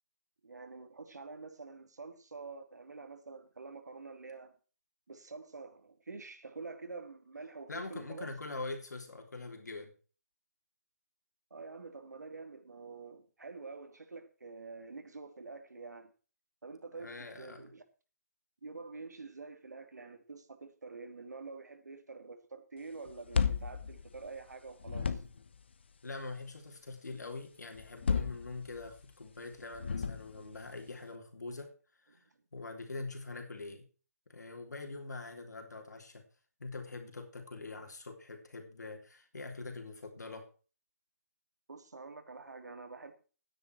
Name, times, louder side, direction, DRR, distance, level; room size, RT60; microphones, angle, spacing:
voice 1, 0.4-4.5 5.1-8.3 11.5-16.1 16.6-17.8 18.6-25.2 32.1-32.2 41.7-43.1, right 4 dB, 85° right, 2.8 m, -47 dB
voice 2, 7.7-9.9 16.9-17.7 26.0-31.7 32.0-32.2 32.5-33.9 34.3-36.2 36.6-40.5, left 3 dB, 85° left, 3.2 m, -44 dB
sound 1, 23.1-24.5 24.8-25.6 27.8-29.0 29.7-30.6, left 6 dB, 40° left, 0.9 m, -33 dB
12.5 x 9.8 x 4.6 m
hypercardioid pair, 175°, 9 cm